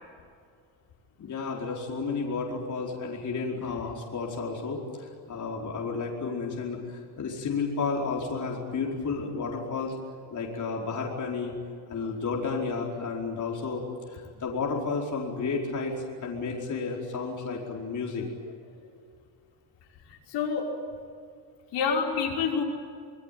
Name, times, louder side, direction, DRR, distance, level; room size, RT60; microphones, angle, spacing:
voice 1, 1.2-9.9 10.3-11.5 11.9-13.8 14.1-15.9 16.2-18.3, left 4 dB, 40° left, -2 dB, 4.8 m, -32 dB
voice 2, 20.3-20.7 21.7-22.6, left 6 dB, 70° left, -1 dB, 5.6 m, -27 dB
26.0 x 21.0 x 9.3 m, 2.3 s
cardioid pair, 140°, 44 cm